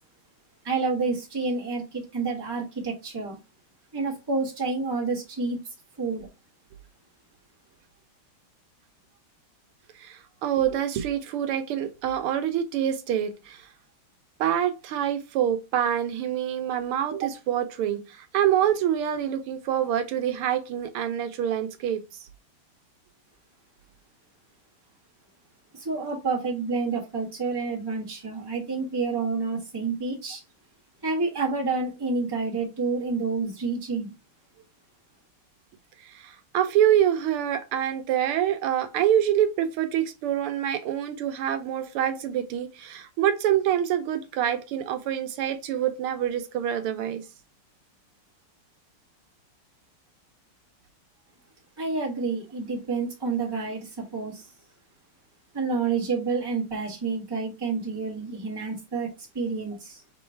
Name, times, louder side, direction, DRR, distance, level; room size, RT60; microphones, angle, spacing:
voice 1, 0.6-3.4 3.9-5.6 6.0-6.3 25.7-30.4 31.0-34.1 51.8-54.5 55.5-60.0, right 4 dB, 15° right, 1.1 m, -29 dB
voice 2, 10.0-13.7 14.4-22.0 36.0-47.2, right 10 dB, 80° right, 1.5 m, -26 dB
3.8 x 3.1 x 4.3 m
omnidirectional pair, 2.4 m